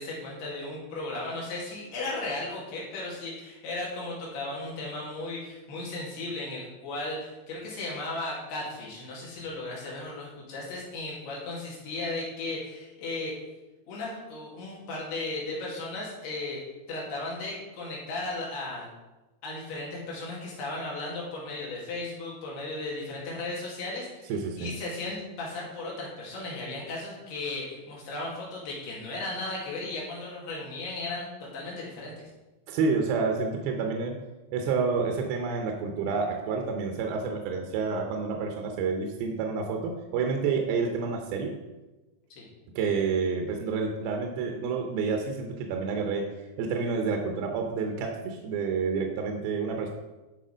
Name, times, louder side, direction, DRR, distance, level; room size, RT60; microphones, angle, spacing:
voice 1, 0.0-13.3 13.9-16.6 16.9-18.9 19.4-32.1 42.4-42.5, left 2 dB, 75° left, -4 dB, 4.3 m, -36 dB
voice 2, 24.3-24.8 32.7-34.2 34.5-41.5 42.8-49.9, right 5 dB, 75° right, 3 dB, 2.6 m, -29 dB
12.0 x 4.7 x 5.1 m, 1.1 s
omnidirectional pair, 4.7 m